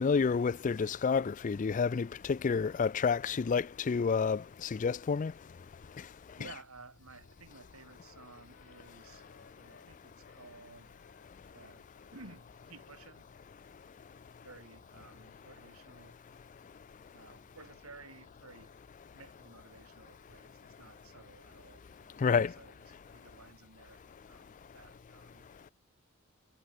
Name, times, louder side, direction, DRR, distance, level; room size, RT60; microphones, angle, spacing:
voice 1, 0.0-5.3 22.2-22.5, left 5 dB, 35° left, 0.4 m, -29 dB
Wind instrument woodwind instrument, 6.4-9.9 10.2-14.7, left 3 dB, 65° left, 7.5 m, -66 dB
voice 2, 6.4-9.3 9.5-11.0 11.5-13.3 14.4-16.2 17.1-18.7 19.1-25.5, right 3 dB, 90° right, 5.8 m, -55 dB
head